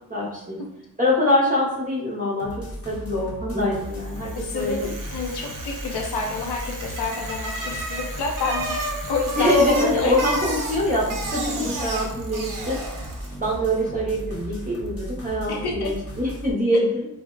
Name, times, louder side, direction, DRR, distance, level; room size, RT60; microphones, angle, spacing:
voice 1, 0.1-0.6 1.0-4.9 9.4-12.8 13.4-17.1, left 1 dB, 20° right, -5 dB, 0.7 m, -24 dB
sound 1, 2.4-16.5, equal, 35° left, 0.8 m, -36 dB
Bicycle, 4.0-13.4, right 2 dB, 55° right, 0.7 m, -33 dB
voice 2, 4.3-10.2 15.5-15.9, left 4 dB, 85° left, 0 dB, 0.7 m, -28 dB
2.7 x 2.0 x 3.7 m, 0.88 s
wide cardioid pair, 80°, 39 cm